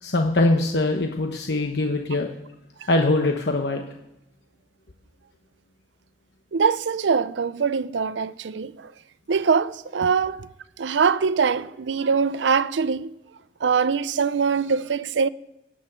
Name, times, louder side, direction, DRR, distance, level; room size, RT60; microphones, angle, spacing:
voice 1, 0.0-2.3 2.9-3.9, left 2 dB, 70° left, 1.0 m, -22 dB
voice 2, 6.5-8.9 9.3-10.5 10.8-13.1 13.6-15.3, right 5 dB, 85° right, 0.5 m, -23 dB
17.5 x 6.3 x 8.8 m
head